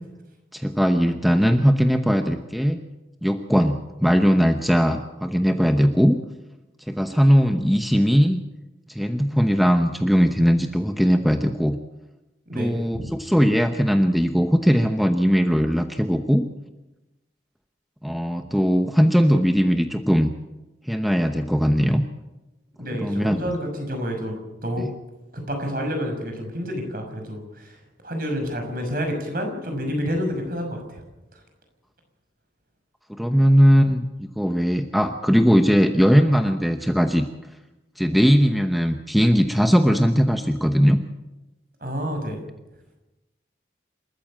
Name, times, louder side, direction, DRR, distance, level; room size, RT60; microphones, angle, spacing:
voice 1, 0.5-2.8 3.2-6.2 6.9-8.4 8.9-11.8 12.5-16.5 18.0-20.3 20.8-22.0 22.9-23.4 24.8-24.9 33.1-34.1 34.4-37.3 38.0-41.0, equal, ahead, 6 dB, 0.9 m, -19 dB
voice 2, 12.5-13.1 22.8-24.3 24.6-24.9 25.3-27.8 28.0-31.0 41.8-42.4, equal, 50° right, 4 dB, 5.9 m, -29 dB
28.0 x 14.0 x 7.4 m, 1.0 s
head